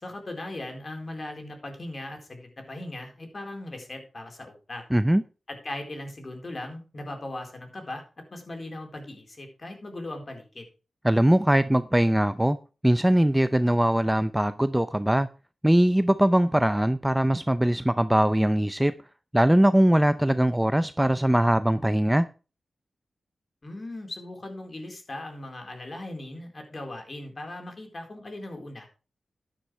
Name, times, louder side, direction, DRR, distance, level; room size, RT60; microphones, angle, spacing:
voice 1, 0.0-4.8 5.5-8.0 8.3-10.7 23.6-28.9, left 1 dB, 40° left, 4.0 m, -38 dB
voice 2, 4.9-5.2 11.0-12.6 12.8-15.3 15.6-18.9 19.3-22.3, right 1 dB, 10° right, 0.5 m, -21 dB
12.0 x 10.0 x 3.3 m
wide cardioid pair, 85°, 0 cm